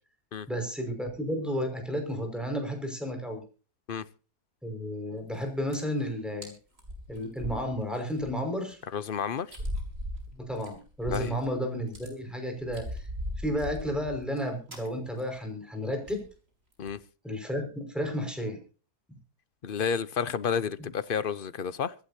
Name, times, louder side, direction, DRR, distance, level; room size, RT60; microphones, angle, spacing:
voice 1, 0.5-3.4 4.6-6.5 7.1-8.8 10.3-13.1 13.4-16.2 17.2-18.6, equal, ahead, 5.5 m, -32 dB
sound 1, 5.2-5.4 5.7-6.0 6.4-6.5 6.8-8.3 8.7-8.8 9.5-11.5 11.8-12.1 12.6-14.4 14.7-14.9 15.2-15.4 15.6-15.7 16.1-16.3 16.7-17.0, left 1 dB, 40° right, 5.0 m, -38 dB
voice 2, 8.9-9.6 11.1-11.3 16.8-17.0 19.6-21.9, left 7 dB, 45° left, 0.7 m, -31 dB
25.5 x 11.5 x 2.8 m
omnidirectional pair, 1.7 m